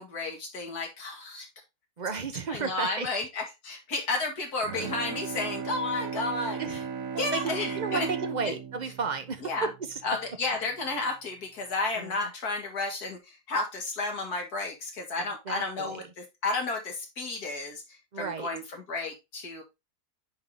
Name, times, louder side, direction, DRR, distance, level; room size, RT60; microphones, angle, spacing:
voice 1, 0.0-1.5 2.1-2.2 2.5-6.8 7.2-8.1 8.4-8.5 9.4-9.7 10.0-19.6, left 3 dB, 70° left, 2.5 m, -32 dB
voice 2, 2.0-3.1 6.6-6.8 7.1-9.4 9.9-10.0 11.9-12.1 15.5-16.0 18.1-18.5, right 5 dB, 35° right, 0.8 m, -33 dB
Bowed string instrument, 4.6-10.3, right 6 dB, 60° right, 1.3 m, -36 dB
9.6 x 3.8 x 3.8 m
omnidirectional pair, 1.7 m